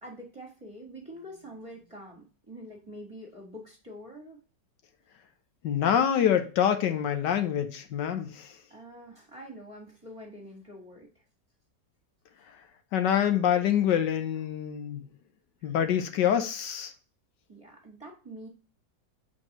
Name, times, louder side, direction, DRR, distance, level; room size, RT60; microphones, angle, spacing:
voice 1, 0.0-4.4 8.7-11.2 15.6-15.7 17.5-18.5, equal, 20° right, 1.7 m, -46 dB
voice 2, 5.6-8.6 12.9-15.1 15.6-16.9, left 9 dB, 80° left, 1.4 m, -26 dB
7.5 x 4.5 x 3.0 m
omnidirectional pair, 1.9 m